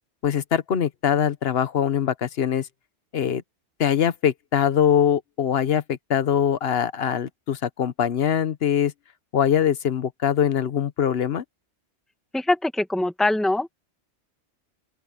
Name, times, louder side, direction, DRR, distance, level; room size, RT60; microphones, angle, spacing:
voice 1, 0.2-2.7 3.1-3.4 3.8-8.9 9.3-11.4, left 9 dB, 60° left, 1.1 m, -22 dB
voice 2, 12.3-13.7, left 2 dB, ahead, 1.9 m, -23 dB
open air
omnidirectional pair, 1.2 m